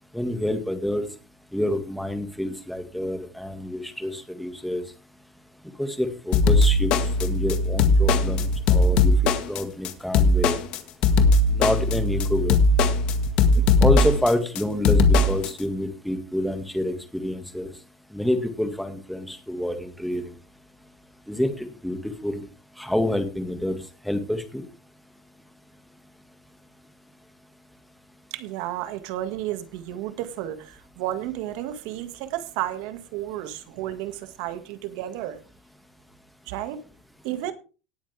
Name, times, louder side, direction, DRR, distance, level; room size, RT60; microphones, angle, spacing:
voice 1, 0.1-1.1 1.5-4.8 5.8-6.9 7.2-10.6 11.5-12.6 13.8-17.7 18.1-20.3 21.3-22.4 22.8-23.8 24.0-24.6, left 1 dB, ahead, 2.0 m, -27 dB
sound 1, 6.3-15.5, left 2 dB, 50° left, 1.8 m, -19 dB
voice 2, 28.3-35.4 36.5-36.8 37.2-37.5, right 13 dB, 70° right, 2.0 m, -32 dB
18.5 x 8.5 x 3.5 m
cardioid pair, 145°, 2 cm